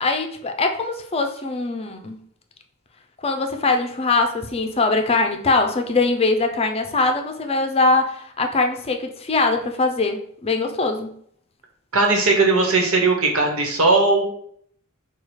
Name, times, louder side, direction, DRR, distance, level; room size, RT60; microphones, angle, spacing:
voice 1, 0.0-2.2 3.2-11.1, left 3 dB, 30° left, 5 dB, 0.5 m, -22 dB
voice 2, 11.9-14.2, right 3 dB, 85° right, 1 dB, 1.2 m, -18 dB
4.8 x 2.3 x 4.7 m, 0.63 s
head